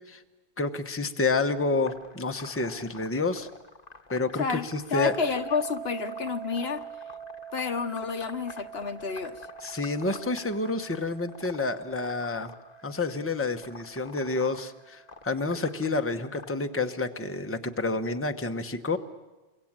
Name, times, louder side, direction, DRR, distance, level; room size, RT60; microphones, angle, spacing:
voice 1, 0.6-3.5 4.1-5.1 9.6-12.5 12.8-19.0, left 3 dB, 15° left, 1.0 m, -29 dB
sound 1, 1.8-16.5, left 3 dB, 40° left, 1.3 m, -47 dB
voice 2, 4.4-6.8 7.5-9.5, left 5 dB, 65° left, 1.4 m, -30 dB
sound 2, 5.0-15.9, right 8 dB, 80° right, 2.2 m, -44 dB
28.5 x 23.0 x 8.9 m
omnidirectional pair, 1.1 m